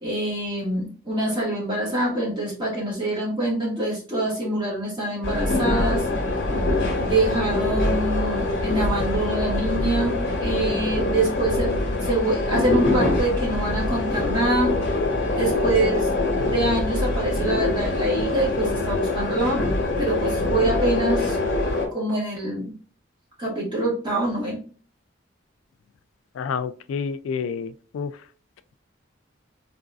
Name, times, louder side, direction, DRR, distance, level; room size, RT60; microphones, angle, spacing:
voice 1, 0.0-6.0 7.0-14.7 15.3-16.1 16.3-19.7 20.0-21.4 21.9-22.7 23.4-24.6, right 1 dB, 25° right, 1.4 m, -25 dB
sound 1, 5.2-21.9, left 2 dB, 60° left, 0.9 m, -24 dB
voice 2, 26.4-28.1, left 6 dB, 85° left, 0.3 m, -29 dB
3.8 x 2.5 x 2.3 m
head